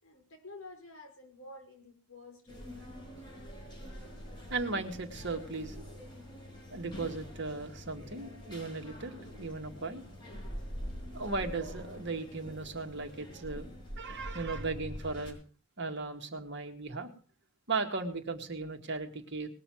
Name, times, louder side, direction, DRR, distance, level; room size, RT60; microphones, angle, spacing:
voice 1, 0.0-2.7, left 2 dB, 70° left, 6 dB, 5.3 m, -50 dB
sound 1, 2.5-15.3, equal, 20° left, 5.5 m, -45 dB
voice 2, 4.5-5.9 6.7-10.0 11.1-13.7 14.0-15.4 15.8-17.1 17.7-19.5, right 3 dB, 55° right, 5 dB, 2.0 m, -37 dB
19.5 x 6.8 x 7.8 m, 0.39 s
head